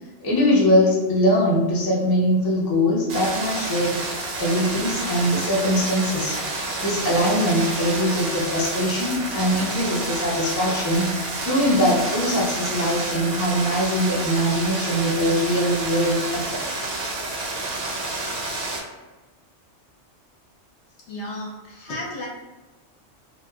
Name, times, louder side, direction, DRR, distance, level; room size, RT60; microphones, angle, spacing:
voice 1, 0.2-4.0 4.4-16.6, equal, 25° left, -5 dB, 0.5 m, -22 dB
sound 1, 3.1-18.8, right 2 dB, 65° right, 0.7 m, -29 dB
sound 2, 5.3-12.5, right 1 dB, 35° right, 1.0 m, -43 dB
voice 2, 21.1-22.3, left 1 dB, 70° left, -3 dB, 0.9 m, -33 dB
2.8 x 2.2 x 2.3 m, 1.2 s
omnidirectional pair, 1.2 m